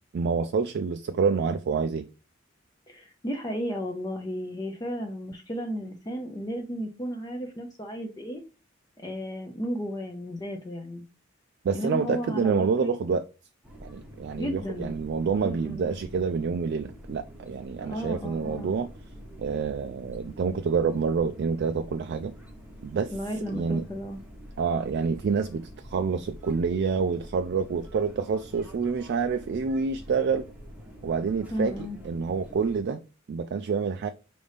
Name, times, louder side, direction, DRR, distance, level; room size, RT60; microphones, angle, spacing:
voice 1, 0.1-2.1 11.6-13.2 13.8-18.9 19.4-22.3 22.8-23.1 23.5-23.8 24.6-30.5 31.0-33.0 33.3-34.1, right 5 dB, 55° right, 0.3 m, -27 dB
voice 2, 2.9-8.4 9.0-11.0 11.7-12.9 14.4-14.9 15.3-15.8 17.8-18.7 23.1-24.2 31.5-32.0, equal, 20° left, 0.5 m, -34 dB
sound 1, 13.6-32.8, equal, 5° right, 0.8 m, -46 dB
5.1 x 2.7 x 3.3 m
head